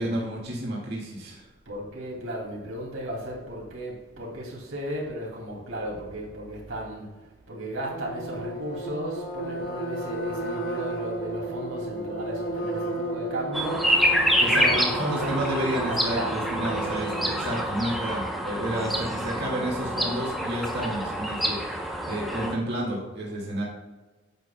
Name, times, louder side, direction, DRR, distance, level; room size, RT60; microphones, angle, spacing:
voice 1, 0.0-1.5 14.4-23.6, right 1 dB, 50° right, -4 dB, 1.9 m, -31 dB
voice 2, 1.7-7.1 7.5-15.5 15.8-16.6 18.5-19.2, right 1 dB, 85° right, -3 dB, 2.4 m, -35 dB
sound 1, 7.9-17.5, right 2 dB, 45° left, 2.3 m, -33 dB
sound 2, 13.5-22.5, equal, ahead, 0.7 m, -27 dB
9.2 x 7.9 x 2.2 m, 1.2 s
head